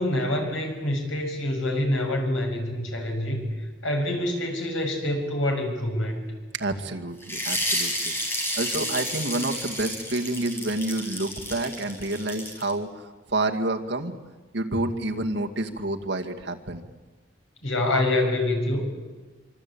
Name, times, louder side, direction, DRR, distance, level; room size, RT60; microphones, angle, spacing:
voice 1, 0.0-3.5 3.8-6.2 17.6-18.8, left 1 dB, 85° left, 3 dB, 7.0 m, -26 dB
voice 2, 6.5-14.1 14.5-16.8, right 2 dB, 60° right, 3 dB, 2.2 m, -29 dB
sound 1, 7.2-12.7, equal, 10° left, 4.7 m, -30 dB
26.5 x 25.0 x 8.7 m, 1.3 s
head